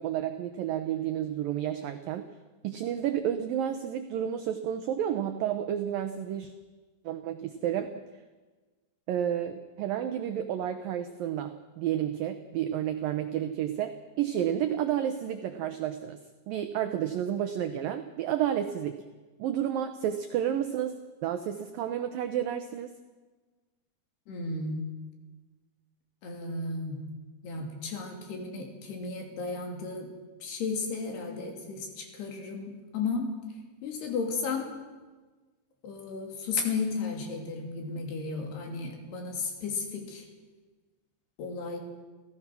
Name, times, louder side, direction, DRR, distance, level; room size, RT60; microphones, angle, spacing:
voice 1, 0.0-2.3 2.6-6.5 7.1-8.0 9.1-16.2 16.5-19.0 19.4-22.9, right 10 dB, 80° right, 8 dB, 2.0 m, -31 dB
voice 2, 24.3-24.8 26.2-27.0 27.4-30.1 30.4-33.3 33.8-34.7 35.8-40.2 41.4-41.8, left 4 dB, 65° left, 2 dB, 5.0 m, -34 dB
29.0 x 15.5 x 6.1 m, 1.3 s
omnidirectional pair, 5.1 m